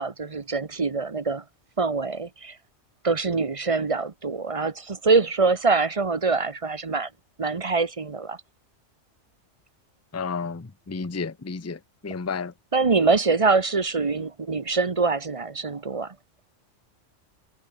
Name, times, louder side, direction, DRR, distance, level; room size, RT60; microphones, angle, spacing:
voice 1, 0.0-1.4 1.8-2.6 3.0-7.1 7.4-8.4 12.7-16.1, right 4 dB, 30° right, 0.9 m, -24 dB
voice 2, 10.1-12.5, left 5 dB, 15° left, 0.6 m, -32 dB
omnidirectional pair, 1.3 m